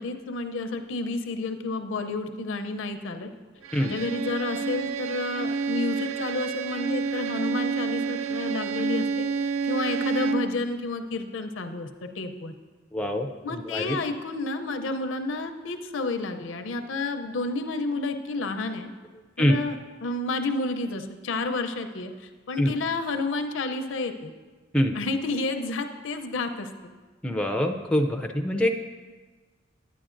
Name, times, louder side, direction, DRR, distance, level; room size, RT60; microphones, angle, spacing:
voice 1, 0.0-3.3 3.8-9.3 9.6-11.9 12.2-12.5 13.4-18.9 19.4-19.7 20.0-22.1 22.5-24.3 24.9-26.7, left 3 dB, 70° left, 7 dB, 0.6 m, -30 dB
Bowed string instrument, 3.6-10.6, right 5 dB, 90° right, 0.4 m, -29 dB
voice 2, 12.9-14.0 19.4-19.6 22.6-22.7 24.7-24.9 27.2-28.7, equal, 5° left, 4 dB, 0.4 m, -24 dB
10.0 x 9.3 x 2.5 m, 1.3 s
head